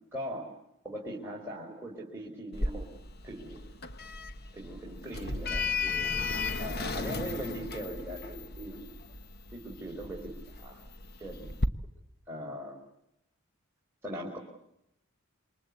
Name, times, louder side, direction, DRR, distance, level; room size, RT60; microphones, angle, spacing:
voice 1, 0.1-0.5 0.8-2.9 3.2-3.7 4.5-6.2 6.4-8.8 9.5-10.8 11.2-11.6 12.3-12.8 14.0-14.4, equal, 10° right, -4 dB, 4.7 m, -40 dB
Sliding door, 2.5-11.7, left 3 dB, 45° left, 1.2 m, -35 dB
28.0 x 25.0 x 8.4 m, 0.80 s
head